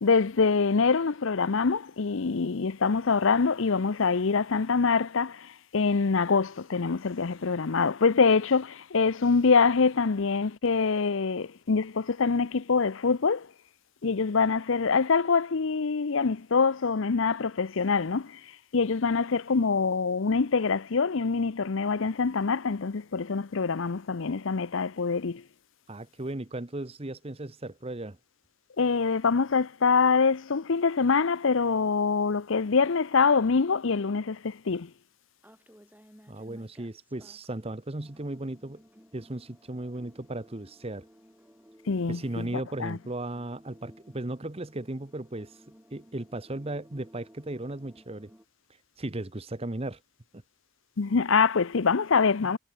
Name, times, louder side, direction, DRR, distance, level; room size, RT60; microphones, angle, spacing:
voice 1, 0.0-13.5 14.0-18.4 18.7-25.4 28.8-34.9 41.9-43.0 51.0-52.6, left 5 dB, 65° left, 0.6 m, -25 dB
voice 2, 25.9-28.2 36.3-38.8 39.1-41.1 42.1-45.6 45.9-48.3 49.0-50.0 50.3-50.4 52.4-52.6, right 1 dB, 30° right, 1.0 m, -36 dB
sound 1, 35.4-37.7 38.0-48.4, equal, 10° right, 5.2 m, -57 dB
head